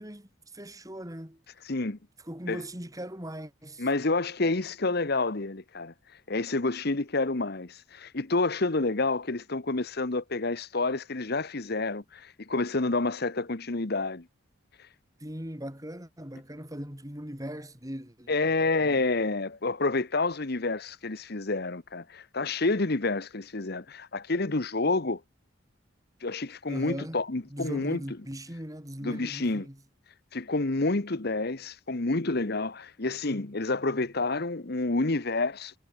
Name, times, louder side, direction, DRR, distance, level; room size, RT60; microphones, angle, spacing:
voice 1, 0.0-1.4 2.2-3.9 15.2-19.0 26.7-27.2 27.5-29.8, equal, 15° right, 4.4 m, -39 dB
voice 2, 1.7-2.0 2.5-2.6 3.8-5.9 6.3-14.2 18.3-25.2 26.2-28.0 29.0-29.7 30.3-35.7, left 3 dB, 50° left, 1.1 m, -29 dB
head